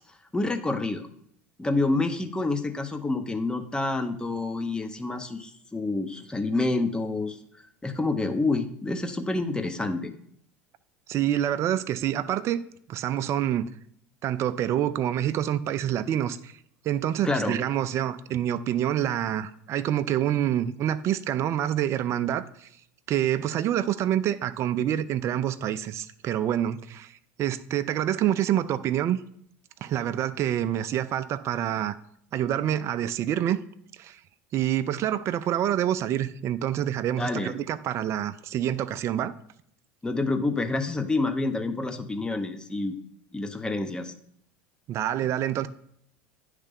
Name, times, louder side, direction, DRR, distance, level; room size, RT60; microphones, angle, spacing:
voice 1, 0.3-1.1 1.6-7.4 7.8-10.1 17.2-17.6 37.2-37.5 40.0-42.9 43.3-44.1, left 2 dB, 10° left, 8 dB, 0.8 m, -28 dB
voice 2, 11.1-12.6 12.9-13.7 14.2-16.5 16.8-22.7 23.1-29.2 29.8-31.9 32.3-33.6 34.0-34.2 34.5-39.4 44.9-45.7, right 11 dB, 45° right, 13 dB, 0.4 m, -27 dB
9.6 x 3.3 x 5.3 m, 0.67 s
hypercardioid pair, 90°, 7 cm